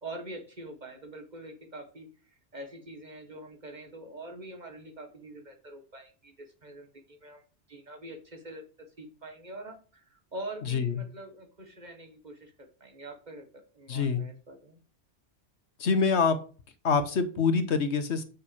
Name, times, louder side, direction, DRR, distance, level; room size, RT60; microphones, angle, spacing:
voice 1, 0.0-7.4 7.7-8.6 9.0-14.8, right 1 dB, 40° right, 4 dB, 1.6 m, -44 dB
voice 2, 10.7-11.0 13.9-14.2 15.8-16.4 16.8-18.2, left 5 dB, 70° left, 9 dB, 1.3 m, -25 dB
6.3 x 5.5 x 7.1 m, 0.37 s
omnidirectional pair, 1.2 m